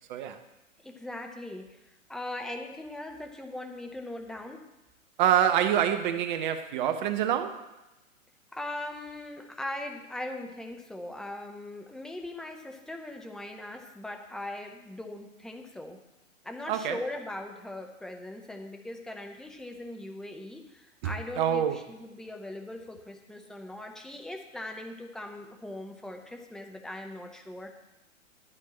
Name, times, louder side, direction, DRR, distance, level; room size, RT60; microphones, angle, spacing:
voice 1, 0.1-0.4 5.2-7.7 16.7-17.0 21.0-21.8, right 10 dB, 35° right, 0.9 m, -26 dB
voice 2, 0.8-4.6 8.5-16.0 16.4-27.7, left 1 dB, ahead, 0.6 m, -40 dB
12.0 x 4.5 x 8.3 m
figure-of-eight pair, 120°, 41 cm